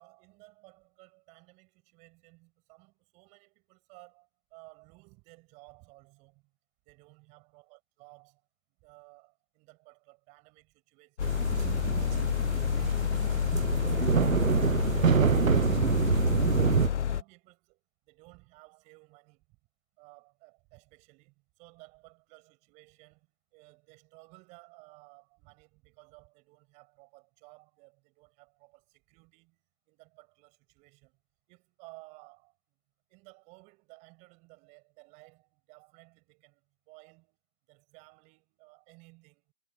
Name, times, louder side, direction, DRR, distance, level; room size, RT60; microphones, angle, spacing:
voice 1, 0.0-6.5 6.8-8.5 8.8-15.7 16.0-19.6 20.0-31.2 31.5-32.8 33.1-37.4 37.7-39.5, right 27 dB, 15° right, 6.8 m, -57 dB
sound 1, 11.2-17.2, left 9 dB, 60° left, 0.5 m, -29 dB
sound 2, 11.2-16.9, right 7 dB, 80° right, 0.9 m, -27 dB
figure-of-eight pair, 155°, 40 cm